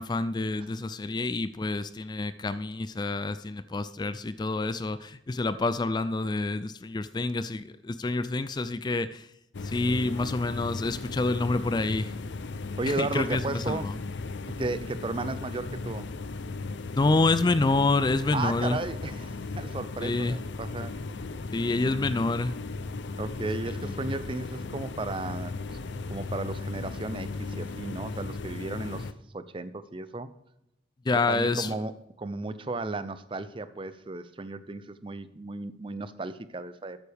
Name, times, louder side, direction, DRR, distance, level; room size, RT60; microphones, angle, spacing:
voice 1, 0.0-9.3 9.6-12.1 12.9-13.9 16.9-18.8 20.0-20.4 21.5-22.5 23.8-23.9 31.1-31.8, left 3 dB, 25° left, 14 dB, 0.3 m, -28 dB
sound 1, 9.5-29.1, left 3 dB, 75° left, 0.6 m, -36 dB
voice 2, 12.8-14.0 14.5-16.1 18.3-20.9 23.2-25.8 26.1-29.1 29.3-30.3 31.3-37.0, right 2 dB, 30° right, 13 dB, 0.6 m, -34 dB
13.5 x 9.2 x 3.5 m, 0.84 s
head